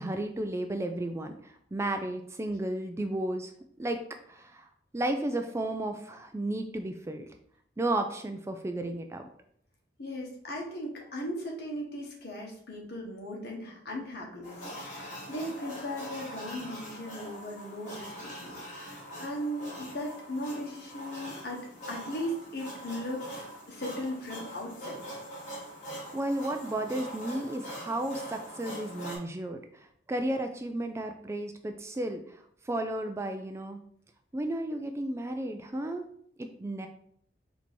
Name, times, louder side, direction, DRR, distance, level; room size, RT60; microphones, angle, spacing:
voice 1, 0.0-3.5 3.8-4.0 4.3-4.7 4.9-7.3 7.8-9.3 26.1-32.4 32.7-33.8 34.3-36.1 36.4-36.9, right 1 dB, 15° right, 6 dB, 0.3 m, -33 dB
voice 2, 10.0-25.0, equal, 60° left, -1 dB, 1.2 m, -38 dB
sound 1, 14.4-29.2, equal, 45° left, 1.9 m, -43 dB
4.5 x 2.7 x 4.3 m, 0.65 s
head